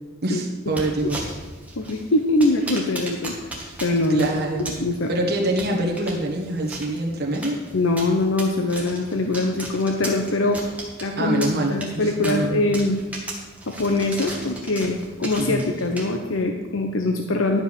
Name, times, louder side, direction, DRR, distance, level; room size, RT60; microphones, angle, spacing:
voice 1, 0.2-1.2 4.0-4.6 5.1-7.6 11.2-12.7 15.4-15.7, right 1 dB, 50° right, 1 dB, 1.4 m, -25 dB
sound 1, 0.7-16.4, right 1 dB, 5° right, 1.6 m, -37 dB
voice 2, 1.8-3.3 3.8-4.3 4.6-5.1 7.7-10.6 11.0-13.0 13.7-17.6, left 2 dB, 65° left, 4 dB, 0.7 m, -23 dB
11.5 x 5.3 x 6.7 m, 1.2 s
head